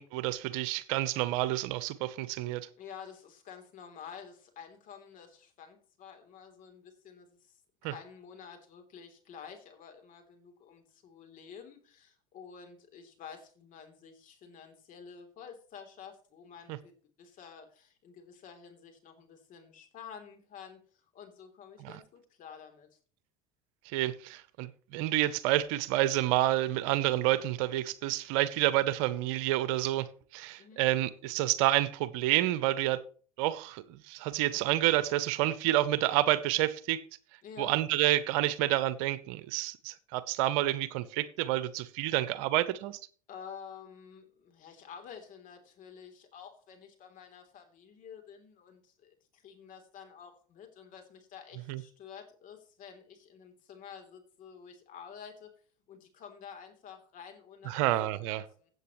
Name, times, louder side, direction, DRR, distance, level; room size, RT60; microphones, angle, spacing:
voice 1, 0.0-2.7 7.8-7.9 16.7-16.8 21.8-21.9 23.9-30.1 30.3-33.0 33.4-37.0 37.6-43.0 51.7-51.8 57.7-58.4, right 15 dB, 65° right, 0.8 m, -29 dB
voice 2, 2.8-16.9 17.2-23.0 30.6-30.8 37.4-37.7 43.3-55.5 55.9-57.9 58.2-58.7, left 7 dB, 45° left, 3.4 m, -50 dB
16.0 x 8.0 x 3.1 m
hypercardioid pair, 80°, 18 cm